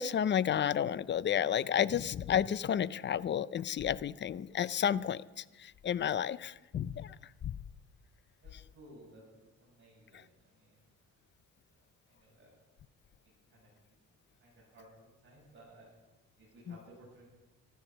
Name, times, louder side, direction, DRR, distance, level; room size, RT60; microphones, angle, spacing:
voice 1, 0.0-7.2 7.4-7.6, left 9 dB, 35° left, 18 dB, 0.4 m, -31 dB
voice 2, 8.4-10.9 11.7-12.5 13.2-13.7 14.4-15.9 16.4-17.2, right 1 dB, 35° right, -6 dB, 7.4 m, -58 dB
15.0 x 13.5 x 6.3 m, 1.1 s
cardioid pair, 125°, 33 cm